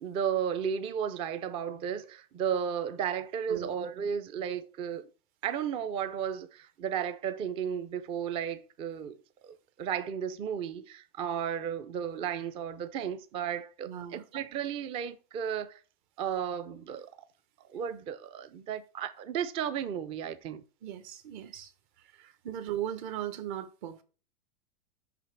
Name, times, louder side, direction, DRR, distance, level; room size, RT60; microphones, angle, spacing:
voice 1, 0.0-5.1 5.4-9.2 9.4-15.8 16.2-17.1 17.7-20.6, right 8 dB, 20° right, 0.4 m, -34 dB
voice 2, 13.8-14.2 20.8-21.7 22.0-24.0, right 11 dB, 55° right, 1.2 m, -38 dB
5.8 x 5.8 x 3.2 m
supercardioid pair, 145°, 29 cm